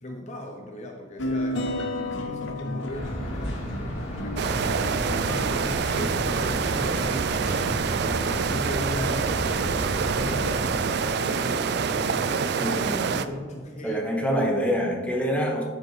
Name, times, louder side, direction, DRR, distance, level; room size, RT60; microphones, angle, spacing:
voice 1, 0.0-7.6 8.3-12.7 13.1-14.0, left 1 dB, 35° left, 2 dB, 0.7 m, -38 dB
sound 1, 1.2-5.7, left 1 dB, 70° left, 0.8 m, -32 dB
sound 2, 2.9-10.7, equal, 90° left, 2.1 m, -32 dB
sound 3, 4.4-13.2, right 5 dB, 55° right, 0.4 m, -26 dB
voice 2, 12.6-13.0 13.8-15.6, equal, 5° left, -1 dB, 1.0 m, -25 dB
11.5 x 5.1 x 3.2 m, 1.5 s
head